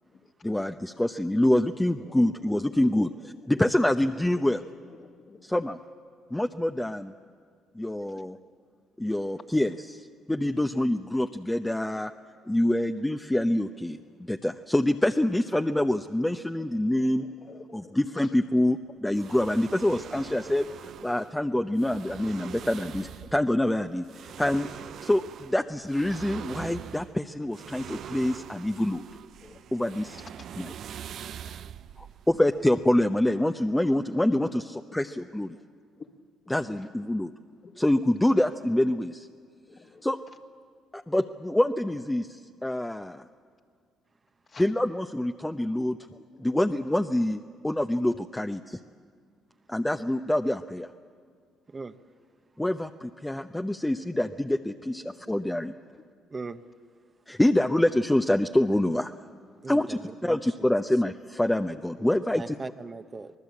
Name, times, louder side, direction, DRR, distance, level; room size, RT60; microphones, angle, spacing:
voice 1, 0.4-3.1 3.5-4.6 5.4-5.8 6.3-7.1 7.8-8.4 9.0-12.1 12.5-17.3 17.7-20.7 21.0-24.0 24.4-24.7 25.0-29.1 29.7-30.2 30.6-30.7 32.0-35.6 36.5-37.3 37.8-39.3 40.0-40.2 40.9-43.2 44.6-46.0 46.4-48.8 49.7-50.9 52.6-55.7 57.3-59.1 59.7-62.5, left 1 dB, 10° left, 6 dB, 0.8 m, -26 dB
voice 2, 2.0-2.8 3.6-3.7 4.4-4.5 4.9-5.5 16.2-18.3 19.1-19.6 20.8-20.9 21.2-21.3 22.5-22.7 23.2-23.3 24.2-24.4 24.9-25.0 27.6-28.1 29.4-30.4 31.4-31.6 33.6-34.4 34.7-35.0 35.5-35.6 36.0-36.1 37.6-37.7 39.7-40.0 44.5-44.7 46.1-46.6 54.8-54.9 55.2-55.6 55.9-56.0 61.7-61.8, left 4 dB, 45° left, 4 dB, 2.0 m, -52 dB
sound 1, 19.1-33.0, right 9 dB, 60° right, 0.6 m, -43 dB
voice 3, 56.3-56.6 59.6-60.4 62.3-63.3, right 4 dB, 30° right, 9 dB, 1.0 m, -39 dB
25.0 x 19.0 x 8.5 m, 2.1 s
hypercardioid pair, 55°, 0 cm